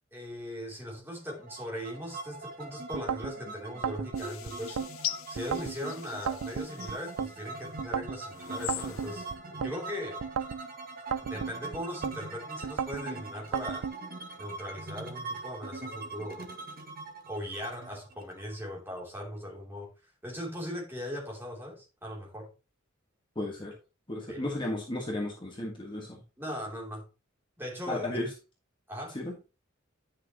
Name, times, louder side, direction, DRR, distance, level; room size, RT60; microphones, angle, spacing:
voice 1, 0.1-4.8 5.3-10.2 11.2-13.9 14.4-16.5 17.3-19.9 20.2-22.5 24.2-24.4 26.4-27.1 27.6-28.1 28.9-29.2, equal, 10° right, 3.2 m, -39 dB
sound 1, 1.3-19.0, right 3 dB, 45° right, 1.9 m, -43 dB
sound 2, 2.9-3.3 3.8-4.9 5.4-5.8 6.3-7.3 7.8-8.2 8.7-9.7 10.2-10.6 11.1-12.2 12.6-13.0 13.5-14.0, right 6 dB, 90° right, 0.4 m, -33 dB
sound 3, 4.1-7.6 8.2-9.4, left 13 dB, 75° left, 0.6 m, -41 dB
voice 2, 23.3-23.7 24.1-26.2 27.9-28.3 29.1-29.3, left 1 dB, 25° left, 1.6 m, -34 dB
11.0 x 6.4 x 3.0 m
head